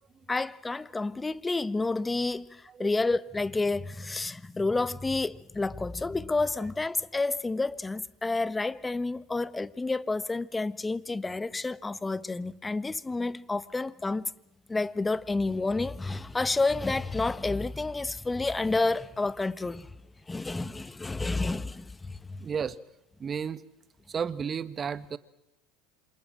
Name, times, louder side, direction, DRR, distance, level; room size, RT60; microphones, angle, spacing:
voice 1, 0.3-14.3 14.7-19.9 20.3-22.4, left 3 dB, 15° left, 1.3 m, -30 dB
voice 2, 22.4-22.8 23.2-23.6 24.1-25.2, right 7 dB, 30° right, 1.6 m, -32 dB
28.0 x 26.5 x 7.6 m
hypercardioid pair, 80°, 0 cm